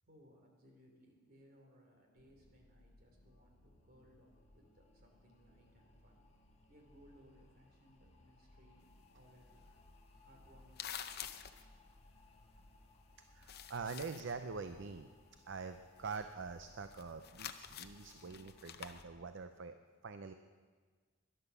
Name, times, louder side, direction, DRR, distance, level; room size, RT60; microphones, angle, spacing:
voice 1, 0.0-6.2 6.7-9.8 10.2-11.5, equal, 50° right, 2 dB, 2.9 m, -65 dB
sound 1, 2.2-19.3, left 2 dB, 30° left, 1.4 m, -64 dB
sound 2, 8.8-13.0 13.3-14.4 14.7-19.0, left 9 dB, 50° left, 0.7 m, -49 dB
voice 2, 13.3-15.1 15.5-19.7 20.0-20.3, right 4 dB, 65° right, 9 dB, 0.5 m, -45 dB
12.5 x 11.0 x 6.8 m, 1.5 s
head